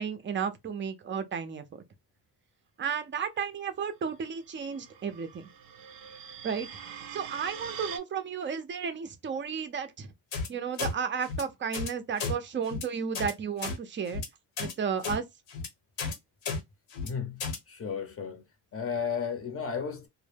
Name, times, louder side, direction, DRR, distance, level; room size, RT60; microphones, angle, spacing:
voice 1, 0.0-1.6 2.8-5.5 6.4-6.7 7.1-10.1 10.5-14.2 14.6-15.2, right 6 dB, 25° right, 0.4 m, -33 dB
sound 1, 4.4-8.0, right 8 dB, 85° right, 0.6 m, -43 dB
sound 2, 10.3-10.5 10.8-10.9 11.2-11.4 11.7-11.9 12.2-12.3 12.6-12.8 13.1-13.3 13.6-13.8 14.1-14.3 14.6-14.7 15.0-15.2 15.5-15.7 16.0-16.1 16.4-16.6 16.9-17.1 17.4-17.6, left 4 dB, 80° left, 1.0 m, -33 dB
voice 2, 17.0-18.4 18.7-20.1, left 6 dB, 30° left, 0.6 m, -34 dB
2.1 x 2.1 x 3.2 m
cardioid pair, 115°, 44 cm